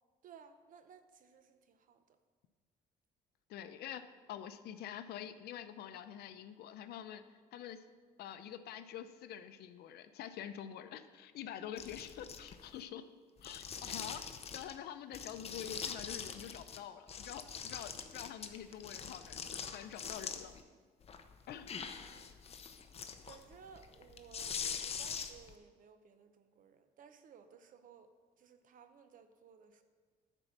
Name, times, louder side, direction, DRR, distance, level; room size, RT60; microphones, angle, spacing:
voice 1, 0.2-2.0 22.0-22.3 23.3-28.1 28.4-29.8, right 7 dB, 55° right, 9 dB, 0.8 m, -58 dB
voice 2, 3.5-7.2 7.5-7.8 8.2-13.1 13.4-14.3 14.5-20.5 21.5-21.7, left 10 dB, 70° left, 11 dB, 0.6 m, -46 dB
sound 1, 11.8-12.8 13.4-14.8 15.1-16.8 17.1-20.6 21.0-25.5, left 6 dB, 35° left, 0.7 m, -44 dB
10.5 x 4.5 x 7.1 m, 1.5 s
cardioid pair, 110°, 17 cm